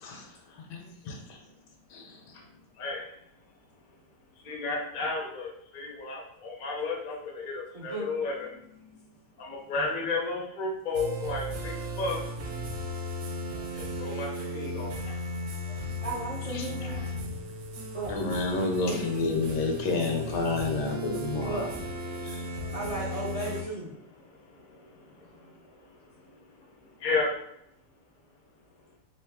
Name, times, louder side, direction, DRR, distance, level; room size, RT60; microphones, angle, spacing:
voice 1, 0.0-1.4 1.9-2.4 16.5-16.7 18.1-21.7 22.2-22.5, left 3 dB, 80° left, 3 dB, 1.3 m, -30 dB
voice 2, 2.8-3.1 4.4-9.0 9.4-12.5 13.7-15.2 15.7-15.8 16.8-17.1 22.1-22.7 24.2-27.3, left 3 dB, 50° left, 0 dB, 0.6 m, -34 dB
voice 3, 7.7-8.1 16.0-17.1 17.9-18.1 21.4-21.7 22.7-23.9, right 2 dB, 40° right, -5 dB, 0.5 m, -35 dB
sound 1, 10.9-23.6, equal, 65° right, 1.0 m, -36 dB
3.2 x 3.1 x 3.4 m, 0.76 s
omnidirectional pair, 1.8 m